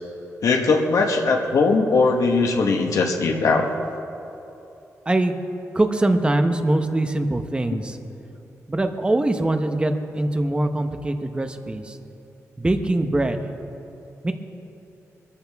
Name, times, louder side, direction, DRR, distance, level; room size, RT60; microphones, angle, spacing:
voice 1, 0.4-3.7 7.7-7.8, left 4 dB, 75° left, 2 dB, 1.3 m, -20 dB
voice 2, 5.7-8.0 8.7-12.0 12.6-13.4 14.2-14.3, right 2 dB, 20° right, 6 dB, 1.0 m, -22 dB
23.0 x 14.0 x 3.6 m, 2.8 s
wide cardioid pair, 120°, 6 cm